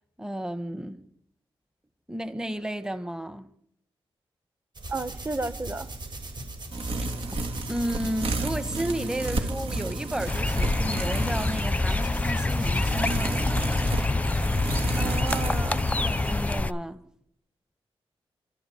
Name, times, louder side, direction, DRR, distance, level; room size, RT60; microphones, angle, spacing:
voice 1, 0.2-1.0 2.1-3.5 7.7-13.4 16.0-17.0, right 1 dB, 5° right, 1.4 m, -33 dB
sound 1, 4.7-13.0, right 1 dB, 50° right, 7.6 m, -39 dB
voice 2, 4.9-5.9 15.0-15.9, right 3 dB, 25° right, 1.6 m, -33 dB
sound 2, 6.7-16.6, right 2 dB, 80° right, 3.3 m, -33 dB
sound 3, 10.3-16.7, left 2 dB, 15° left, 0.8 m, -26 dB
26.0 x 14.5 x 9.5 m
cardioid pair, 90°, 10 cm